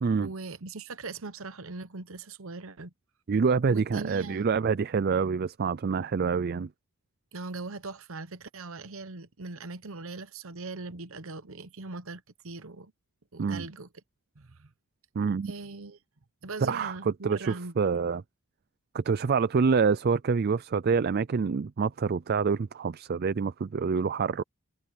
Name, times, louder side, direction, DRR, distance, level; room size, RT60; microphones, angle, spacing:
voice 1, 0.2-2.9 3.7-4.4 7.3-12.9 13.3-13.9 14.4-14.7 15.4-16.0 16.4-17.9, right 3 dB, 65° right, 0.9 m, -40 dB
voice 2, 3.3-6.7 13.4-13.7 15.2-15.5 16.7-18.2 18.9-24.4, right 5 dB, 45° right, 0.4 m, -26 dB
head